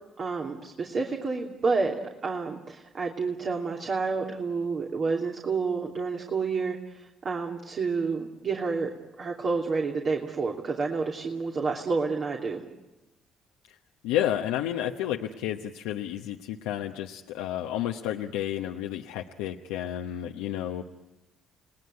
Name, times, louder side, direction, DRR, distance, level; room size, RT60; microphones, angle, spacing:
voice 1, 0.2-8.9 9.2-12.6, right 4 dB, 50° right, 1 dB, 2.9 m, -29 dB
voice 2, 14.0-20.8, left 11 dB, 80° left, 3 dB, 1.0 m, -31 dB
30.0 x 19.5 x 9.4 m, 1.1 s
hypercardioid pair, 55°, 0 cm